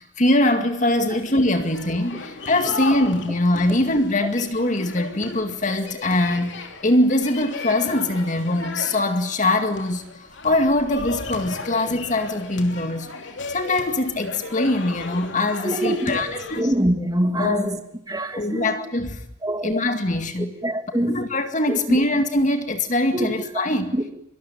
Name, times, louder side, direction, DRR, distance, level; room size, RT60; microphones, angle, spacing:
voice 1, 0.0-13.1 13.5-16.7 17.4-17.7 18.3-19.3 19.6-20.6 21.0-24.0, left 1 dB, 35° left, 2.1 m, -22 dB
sound 1, 0.9-16.6, left 3 dB, 60° left, 3.0 m, -35 dB
voice 2, 15.6-16.2 16.6-17.8 18.1-18.7 19.4-19.8 20.6-21.2 21.7-22.0 23.1-23.3 23.9-24.1, right 1 dB, 20° right, 2.7 m, -24 dB
25.5 x 24.0 x 9.2 m
head